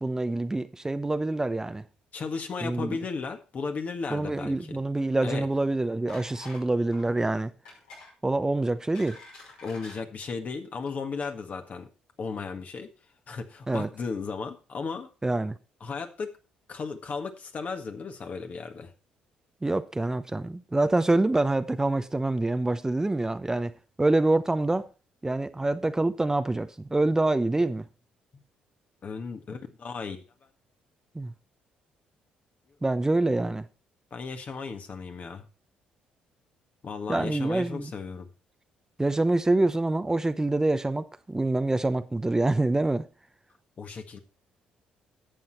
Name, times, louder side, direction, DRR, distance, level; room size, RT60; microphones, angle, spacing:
voice 1, 0.0-1.8 2.6-3.0 4.1-7.5 8.2-9.2 13.7-13.9 15.2-15.5 19.6-23.7 24.0-24.9 25.2-27.9 31.1-31.3 32.8-33.6 37.1-37.9 39.0-43.1, right 2 dB, 15° right, 0.8 m, -26 dB
voice 2, 2.1-4.8 5.2-5.5 9.6-11.9 12.2-12.9 13.3-15.1 15.8-16.3 16.7-18.9 28.3-28.4 29.0-30.2 34.1-35.4 36.8-38.3 43.8-44.2, left 4 dB, 50° left, 1.8 m, -35 dB
sound 1, 6.1-6.7 6.9-7.1 7.6-8.1 8.6-10.0 10.7-10.9 11.2-11.3, left 3 dB, 90° left, 5.7 m, -47 dB
11.0 x 7.6 x 4.3 m
hypercardioid pair, 55°, 3 cm